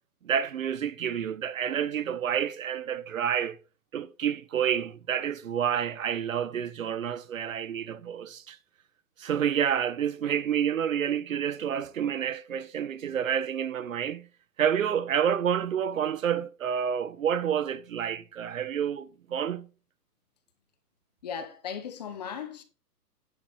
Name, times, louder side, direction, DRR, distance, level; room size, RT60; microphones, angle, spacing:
voice 1, 0.2-3.6 3.9-8.6 9.2-14.3 14.6-19.7, right 8 dB, 55° right, 1.0 m, -29 dB
voice 2, 21.2-22.6, left 7 dB, 25° left, 1.0 m, -37 dB
10.5 x 6.2 x 4.2 m
hypercardioid pair, 165°, 47 cm